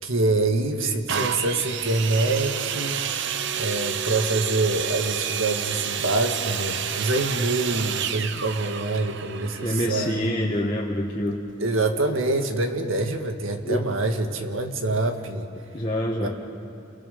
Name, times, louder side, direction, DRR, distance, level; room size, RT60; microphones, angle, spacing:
voice 1, 0.0-3.0 3.6-10.3 11.6-15.5 16.2-16.3, right 2 dB, 85° right, 5 dB, 1.9 m, -25 dB
sound 1, 1.1-10.8 11.5-11.6, right 8 dB, 65° right, 0.9 m, -30 dB
voice 2, 9.6-11.4 13.7-13.9 15.7-16.3, equal, 25° left, -5 dB, 1.8 m, -26 dB
29.5 x 29.0 x 5.5 m, 2.6 s
head